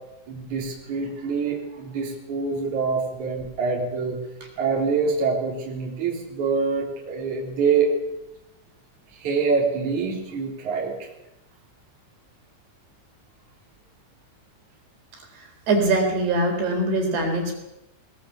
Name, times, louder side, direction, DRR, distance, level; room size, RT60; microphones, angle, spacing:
voice 1, 0.3-4.2 4.6-7.9 9.2-11.0, right 5 dB, 40° right, -2 dB, 4.9 m, -25 dB
voice 2, 15.4-17.6, right 2 dB, 60° right, 2 dB, 5.9 m, -23 dB
22.0 x 20.5 x 7.3 m, 0.90 s
omnidirectional pair, 5.3 m